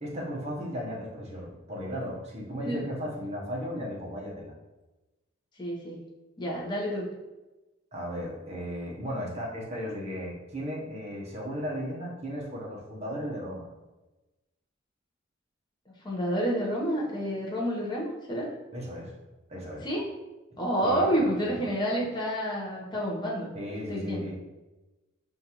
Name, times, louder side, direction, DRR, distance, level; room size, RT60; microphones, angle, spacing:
voice 1, 0.0-4.5 7.9-13.7 18.7-19.1 19.5-19.9 20.8-21.7 23.5-24.4, equal, 30° right, -3 dB, 0.8 m, -36 dB
voice 2, 5.6-6.0 6.4-7.1 16.0-18.5 19.8-20.0 20.6-23.5 23.9-24.2, equal, 20° left, -3 dB, 0.7 m, -29 dB
5.2 x 2.4 x 2.9 m, 1.1 s
head